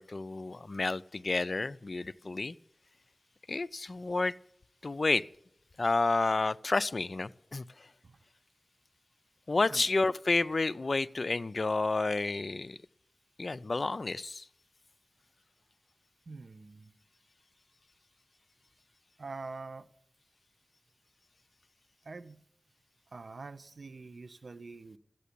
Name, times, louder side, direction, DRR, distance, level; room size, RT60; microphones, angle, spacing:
voice 1, 0.0-2.6 3.5-4.3 4.8-5.3 5.8-7.9 9.5-12.8 13.4-14.5, left 3 dB, 65° left, 16 dB, 0.5 m, -30 dB
voice 2, 16.3-16.9 19.2-19.9 22.0-22.4 23.1-25.0, right 3 dB, 80° right, 11 dB, 0.7 m, -45 dB
14.0 x 9.1 x 8.5 m, 0.71 s
wide cardioid pair, 50°, 0 cm